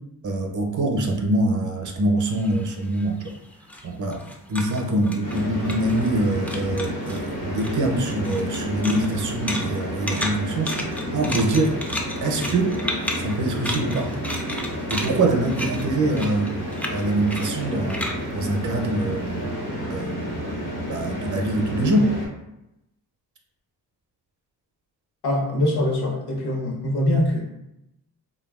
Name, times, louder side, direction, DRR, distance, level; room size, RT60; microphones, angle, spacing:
voice 1, 0.2-3.4 3.8-4.2 4.5-11.7 12.2-12.8 13.2-14.1 14.9-16.5 16.9-18.0 18.3-19.5 19.9-22.2, right 1 dB, 45° right, 4 dB, 0.6 m, -24 dB
sound 1, 2.3-6.2 6.5-7.2 7.6-19.4, equal, 5° left, 0.3 m, -33 dB
sound 2, 5.2-22.3, equal, 90° left, 1.1 m, -30 dB
voice 2, 25.2-27.4, left 1 dB, 70° left, -1 dB, 0.9 m, -23 dB
2.9 x 2.3 x 2.3 m, 0.87 s
cardioid pair, 70°, 40 cm